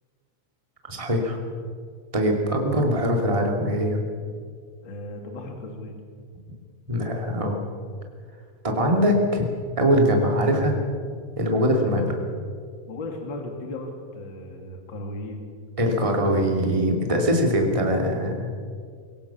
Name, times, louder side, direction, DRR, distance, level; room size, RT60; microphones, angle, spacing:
voice 1, 0.9-1.4 2.1-4.0 6.9-7.6 8.6-9.5 9.8-10.8 11.4-12.0 15.8-18.5, equal, 10° right, 2 dB, 2.0 m, -22 dB
voice 2, 4.8-6.0 11.6-12.2 12.9-15.4, left 2 dB, 35° left, 3 dB, 2.6 m, -36 dB
23.5 x 17.5 x 7.3 m, 2.1 s
omnidirectional pair, 4.6 m